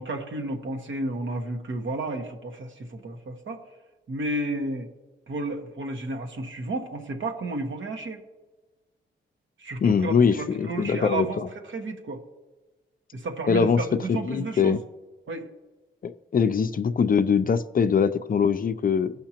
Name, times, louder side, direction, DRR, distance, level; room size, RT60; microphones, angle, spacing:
voice 1, 0.0-3.6 4.1-4.9 5.3-8.2 9.6-11.4 11.6-12.2 13.1-14.7 15.3-15.5, right 2 dB, 70° right, 3 dB, 1.3 m, -32 dB
voice 2, 9.8-11.5 13.5-13.8 14.1-14.8 16.0-19.1, left 6 dB, 45° left, 11 dB, 0.5 m, -22 dB
15.5 x 5.7 x 2.9 m, 1.2 s
cardioid pair, 70°, 20 cm